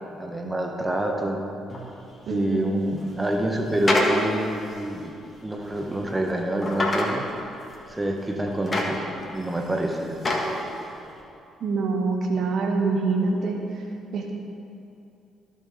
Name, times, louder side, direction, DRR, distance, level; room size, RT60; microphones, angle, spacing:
voice 1, 0.2-1.5 2.3-5.1 5.4-7.2 7.9-9.0 9.3-10.2, right 1 dB, 15° right, 2 dB, 1.2 m, -27 dB
sound 1, 1.7-1.9 3.0-4.2 4.7-4.8 5.7-6.1 6.6-7.1 7.7-7.8 8.5-9.4 9.8-10.5 11.1-11.2, left 2 dB, 30° left, 1.5 m, -26 dB
voice 2, 2.3-2.8 11.6-13.6 14.1-14.3, right 4 dB, 50° right, 2 dB, 1.2 m, -25 dB
14.0 x 6.6 x 3.3 m, 2.7 s
figure-of-eight pair, 45°, 0 cm